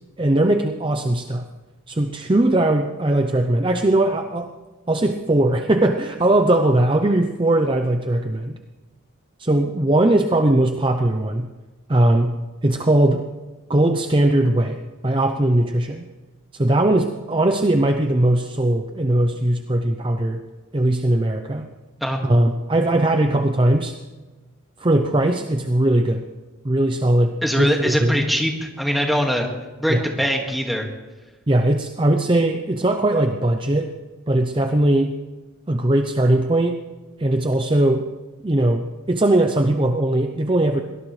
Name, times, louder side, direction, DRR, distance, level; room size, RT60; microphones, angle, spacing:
voice 1, 0.2-1.5 1.9-4.5 4.9-8.6 9.4-11.5 11.9-12.4 12.6-13.2 13.7-16.1 16.5-20.4 20.7-21.7 22.2-23.9 24.8-26.2 26.6-28.2 29.9-30.0 31.5-33.9 34.3-35.1 35.7-36.8 37.2-38.1 38.4-40.8, right 1 dB, 25° right, 6 dB, 0.6 m, -19 dB
voice 2, 27.4-29.5 29.8-30.9, equal, ahead, 1 dB, 2.0 m, -22 dB
23.0 x 18.5 x 3.3 m, 1.2 s
head